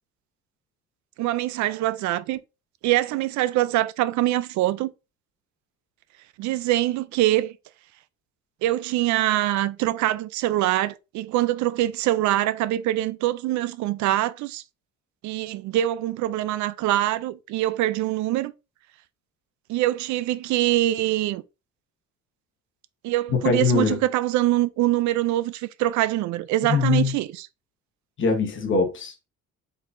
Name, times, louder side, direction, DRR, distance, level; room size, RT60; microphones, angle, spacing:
voice 1, 1.2-2.4 2.8-4.9 6.4-7.5 8.6-14.6 15.2-18.5 19.7-21.4 23.0-27.3, right 15 dB, 75° right, 0.5 m, -24 dB
voice 2, 23.3-24.0 26.6-27.2 28.2-29.3, left 4 dB, 40° left, 1.2 m, -22 dB
4.6 x 4.0 x 2.6 m
cardioid pair, 150°, 29 cm